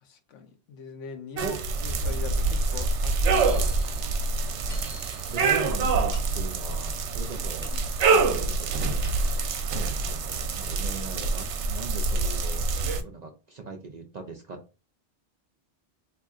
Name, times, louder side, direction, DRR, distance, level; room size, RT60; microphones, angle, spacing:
voice 1, 0.0-3.8, left 5 dB, 85° left, 1.0 m, -42 dB
sound 1, 1.4-13.0, right 4 dB, 75° right, 0.9 m, -26 dB
Bird, 1.8-4.3, right 1 dB, 60° left, 1.4 m, -29 dB
voice 2, 4.4-4.9 5.3-7.7 8.1-9.1 9.7-12.6 13.0-14.6, right 4 dB, 55° right, 0.5 m, -39 dB
sound 2, 6.1-8.3 8.7-9.6, left 2 dB, 15° left, 2.1 m, -50 dB
3.7 x 3.0 x 2.4 m
omnidirectional pair, 1.2 m